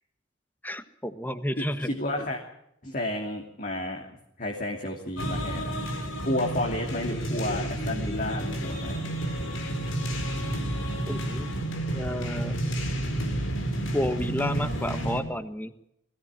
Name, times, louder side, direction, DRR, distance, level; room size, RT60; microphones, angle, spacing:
voice 1, 0.6-1.9 11.1-11.5 11.9-12.6 13.9-15.7, left 1 dB, 10° left, 10 dB, 1.4 m, -31 dB
voice 2, 1.6-2.4 2.8-4.0 4.4-5.8 6.2-9.1, left 1 dB, 45° left, 0 dB, 2.9 m, -31 dB
sound 1, 5.2-15.2, right 1 dB, 85° left, 4.6 m, -30 dB
21.5 x 17.0 x 7.6 m, 0.80 s
head